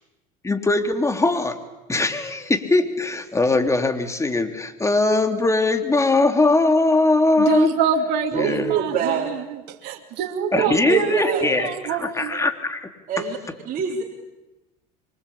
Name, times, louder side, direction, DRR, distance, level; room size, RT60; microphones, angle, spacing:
voice 1, 0.4-1.6 1.9-7.7 8.3-8.7 10.5-12.9, left 2 dB, 15° left, 6 dB, 3.4 m, -20 dB
voice 2, 7.4-12.3, right 7 dB, 65° right, 3 dB, 2.8 m, -26 dB
voice 3, 8.3-9.3 10.5-11.6 12.3-12.4 13.1-13.4 13.6-14.0, right 7 dB, 45° right, -2 dB, 4.3 m, -25 dB
27.0 x 24.0 x 8.7 m, 1.0 s
supercardioid pair, 90°, 19 cm